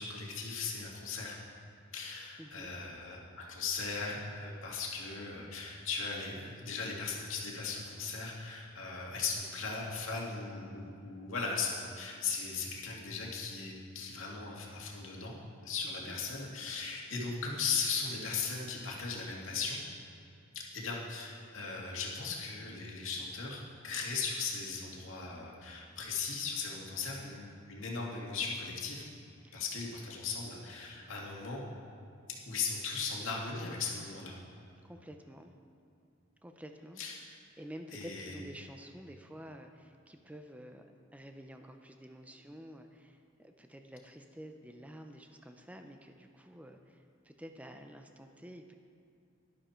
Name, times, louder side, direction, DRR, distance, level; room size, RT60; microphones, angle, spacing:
voice 1, 0.0-1.4 1.9-15.3 15.6-19.8 20.5-29.0 29.5-31.6 32.4-34.3 37.0-37.3 37.9-38.4, left 4 dB, 75° left, -2 dB, 2.2 m, -38 dB
voice 2, 2.4-2.7 16.0-16.2 29.4-29.6 34.8-35.5 36.4-37.0 37.6-48.7, equal, 5° right, 5 dB, 0.6 m, -50 dB
12.0 x 11.5 x 4.4 m, 2.6 s
head